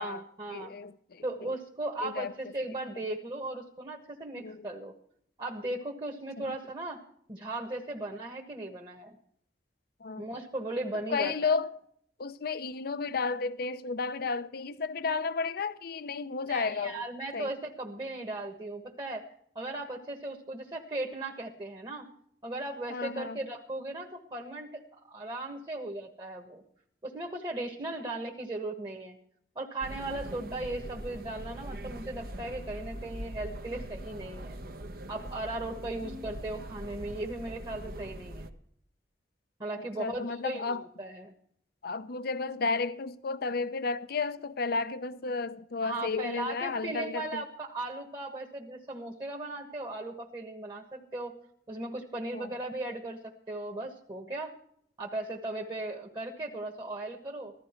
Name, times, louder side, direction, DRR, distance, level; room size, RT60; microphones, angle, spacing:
voice 1, 0.0-0.7 1.2-4.9 5.4-7.0 7.3-9.2 10.2-11.6 16.5-19.2 19.5-22.1 22.4-26.6 27.0-29.2 29.5-34.6 35.1-38.5 39.6-41.3 45.8-51.3 51.7-54.5 55.0-57.5, right 2 dB, 25° right, 1.4 m, -37 dB
voice 2, 0.5-1.5 2.0-2.3 4.4-4.7 6.4-6.5 10.0-10.3 11.1-11.7 12.2-17.0 17.3-17.5 22.9-23.4 36.0-36.2 39.7-40.8 41.8-47.4 52.3-52.6, left 4 dB, 60° left, 0.6 m, -33 dB
sound 1, 29.8-38.5, right 1 dB, 55° right, 1.0 m, -42 dB
15.5 x 13.0 x 4.5 m
head